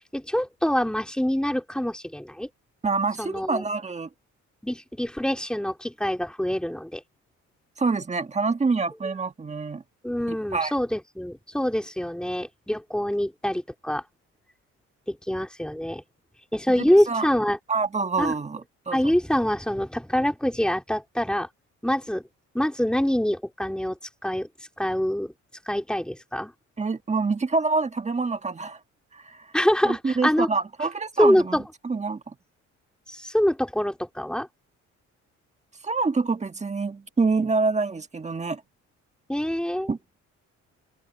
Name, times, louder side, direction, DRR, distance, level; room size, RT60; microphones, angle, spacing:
voice 1, 0.1-2.5 3.2-3.6 4.6-7.0 10.0-14.0 15.1-16.0 16.5-17.6 18.2-18.3 18.9-21.5 21.8-22.2 22.5-24.0 24.2-24.5 24.8-25.3 25.7-26.5 29.5-30.5 31.2-31.6 33.1-34.5 39.3-39.9, equal, 5° left, 3.8 m, -25 dB
voice 2, 2.8-4.1 7.8-9.8 10.3-10.7 16.8-17.3 17.7-19.0 26.8-28.8 29.1-29.5 29.8-31.6 31.8-32.2 35.8-38.6 39.9-40.0, right 4 dB, 20° right, 1.6 m, -26 dB
open air
cardioid pair, 90°, 30 cm